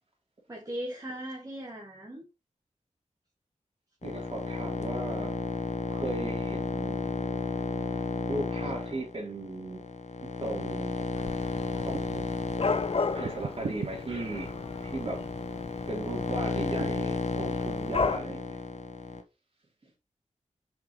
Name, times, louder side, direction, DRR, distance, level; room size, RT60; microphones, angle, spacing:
voice 1, 0.5-2.3, equal, 30° right, 1.9 m, -38 dB
sound 1, 4.0-19.2, left 3 dB, 65° left, 1.0 m, -33 dB
voice 2, 4.0-5.3 5.9-7.1 8.3-9.8 10.2-11.1 11.7-12.3 13.1-14.5 14.8-15.2 15.9-18.5, right 2 dB, 50° right, 3.2 m, -37 dB
Dog / Cat, 11.1-18.2, left 4 dB, 50° left, 0.6 m, -35 dB
sound 2, 11.8-12.3 13.2-13.9 15.1-15.3 16.8-17.1, right 5 dB, 75° right, 0.6 m, -38 dB
5.7 x 5.3 x 3.1 m
wide cardioid pair, 65°, 13 cm